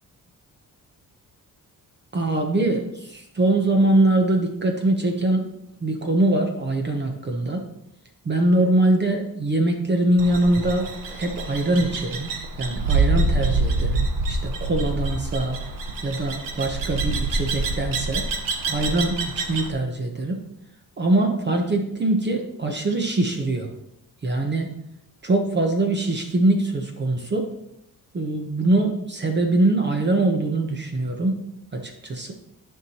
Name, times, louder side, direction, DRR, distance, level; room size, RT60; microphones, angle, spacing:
voice 1, 2.1-5.5 5.8-7.6 8.2-12.3 12.6-15.6 16.0-18.3 18.7-20.4 21.0-23.7 24.2-24.7 25.2-27.5 28.1-31.4 31.7-32.3, right 2 dB, 30° right, 3 dB, 0.9 m, -23 dB
sound 1, 10.2-19.7, right 3 dB, 75° right, 1.1 m, -26 dB
12.5 x 5.5 x 2.9 m, 0.83 s
wide cardioid pair, 145°, 34 cm